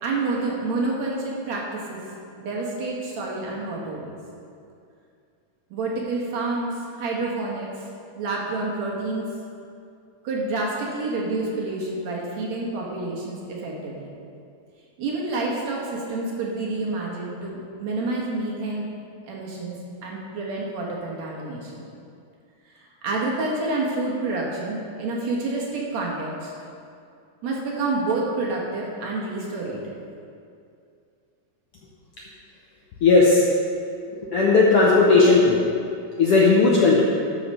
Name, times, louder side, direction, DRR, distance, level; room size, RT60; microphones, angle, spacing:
voice 1, 0.0-2.0 2.4-4.1 5.7-7.8 8.2-9.3 10.2-14.1 15.0-18.9 19.3-19.7 20.0-21.8 22.7-26.5 27.4-30.0, right 2 dB, 60° right, -3 dB, 2.3 m, -28 dB
voice 2, 33.0-33.4 34.3-35.6 36.2-37.0, left 3 dB, 80° left, -4 dB, 1.3 m, -16 dB
12.5 x 5.0 x 5.4 m, 2.4 s
omnidirectional pair, 3.8 m